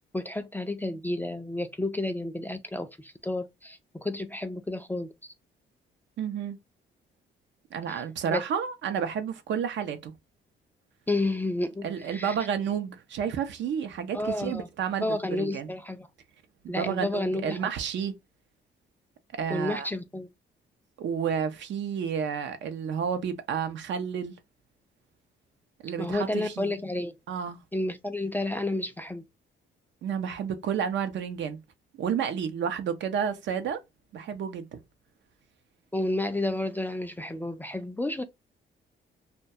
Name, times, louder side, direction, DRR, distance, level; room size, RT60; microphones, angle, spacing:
voice 1, 0.1-5.3 7.9-8.0 8.3-8.4 11.1-12.3 14.1-14.7 15.0-16.1 16.7-17.6 19.5-20.3 26.0-27.2 27.7-29.2 35.9-38.2, left 2 dB, 10° left, 0.3 m, -31 dB
voice 2, 6.2-6.6 7.7-10.1 11.8-15.7 16.6-18.1 19.4-19.9 21.0-24.3 25.8-26.8 27.3-27.6 30.0-31.6 32.0-33.8 34.1-34.8, right 7 dB, 65° right, 0.6 m, -31 dB
2.2 x 2.2 x 2.6 m
cardioid pair, 90°, 20 cm